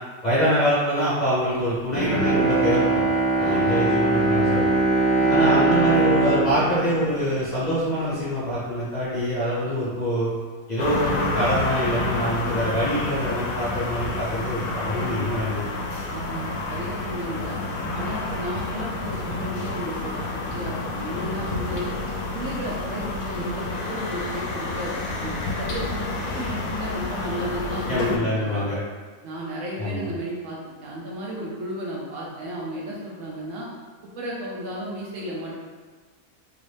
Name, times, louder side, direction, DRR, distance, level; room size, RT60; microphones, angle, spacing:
voice 1, 0.2-3.0 3.4-4.7 5.3-10.3 10.7-15.6 27.9-28.8 29.8-30.0, equal, 35° left, -10 dB, 0.8 m, -25 dB
Bowed string instrument, 1.9-8.1 8.5-8.6, right 2 dB, 30° right, 0.4 m, -22 dB
voice 2, 3.4-3.8 5.2-5.5 16.1-17.6 17.9-21.9 22.3-28.6 29.2-33.7 34.2-35.5, right 1 dB, 70° right, -4 dB, 0.9 m, -33 dB
sound 1, 10.8-28.2, left 2 dB, 85° left, 1.1 m, -29 dB
3.0 x 2.5 x 3.3 m, 1.4 s
omnidirectional pair, 1.6 m